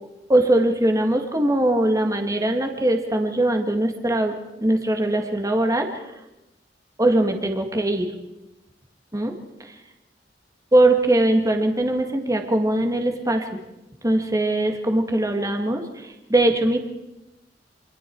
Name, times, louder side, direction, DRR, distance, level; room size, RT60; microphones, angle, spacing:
voice 1, 0.3-5.9 7.0-8.1 9.1-9.3 10.7-13.6 14.0-16.8, right 1 dB, 20° right, 4 dB, 2.1 m, -21 dB
29.0 x 26.0 x 4.7 m, 0.95 s
head